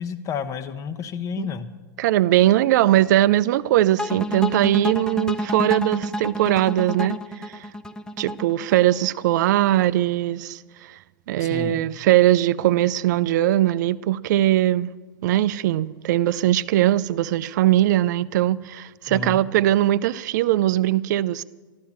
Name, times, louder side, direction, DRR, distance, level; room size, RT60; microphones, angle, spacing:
voice 1, 0.0-1.7 11.4-11.9 19.1-19.4, left 6 dB, 30° left, 1.1 m, -31 dB
voice 2, 2.0-7.7 8.2-11.0 11.3-14.9 15.2-21.4, right 14 dB, 60° right, 0.6 m, -20 dB
sound 1, 4.0-9.1, left 1 dB, 5° left, 0.7 m, -29 dB
13.0 x 11.5 x 7.3 m
hypercardioid pair, 105°, 11 cm